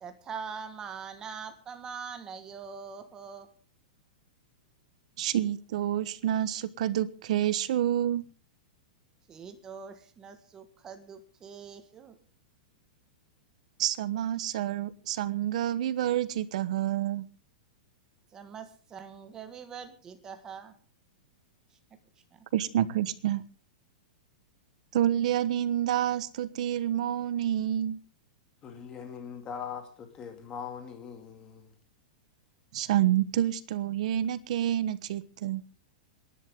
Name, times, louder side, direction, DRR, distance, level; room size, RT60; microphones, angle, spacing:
voice 1, 0.0-3.5 9.3-12.2 18.3-20.7 22.3-22.4, right 6 dB, 15° right, 1.5 m, -43 dB
voice 2, 5.2-8.3 13.8-17.2 22.5-23.4 24.9-28.0 32.7-35.6, right 11 dB, 50° right, 1.1 m, -28 dB
voice 3, 28.6-31.7, left 7 dB, 15° left, 2.3 m, -41 dB
27.5 x 11.0 x 3.7 m
supercardioid pair, 175°, 5 cm